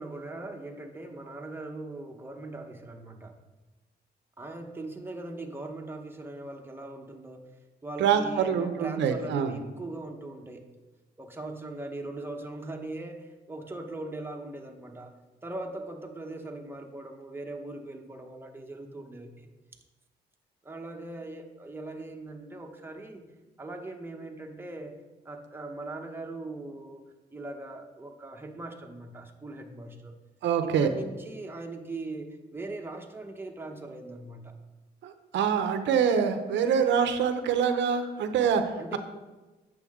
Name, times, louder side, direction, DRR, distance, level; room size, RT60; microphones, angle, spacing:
voice 1, 0.0-3.4 4.4-7.5 7.8-10.7 11.2-15.1 15.4-19.5 20.6-23.3 23.6-24.9 25.2-27.0 27.3-30.2 30.6-34.5 38.8-39.0, right 2 dB, 10° right, 3 dB, 0.9 m, -40 dB
voice 2, 8.0-9.5 30.4-30.9 35.0-38.6, right 7 dB, 90° right, 8 dB, 0.7 m, -25 dB
8.4 x 6.4 x 3.6 m, 1.2 s
cardioid pair, 95°, 18 cm